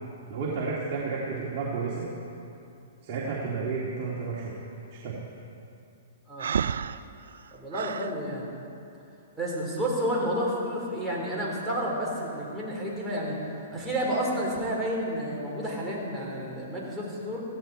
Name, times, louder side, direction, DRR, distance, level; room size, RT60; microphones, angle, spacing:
voice 1, 0.3-2.1 3.0-4.5 4.9-5.2, right 4 dB, 45° right, -6 dB, 2.5 m, -31 dB
Breathing, 6.4-8.1, right 7 dB, 75° right, 0.4 m, -31 dB
voice 2, 7.5-8.5 9.4-13.4 13.7-17.4, equal, 5° right, -6 dB, 4.3 m, -30 dB
17.5 x 15.5 x 4.5 m, 2.6 s
hypercardioid pair, 135°, 0 cm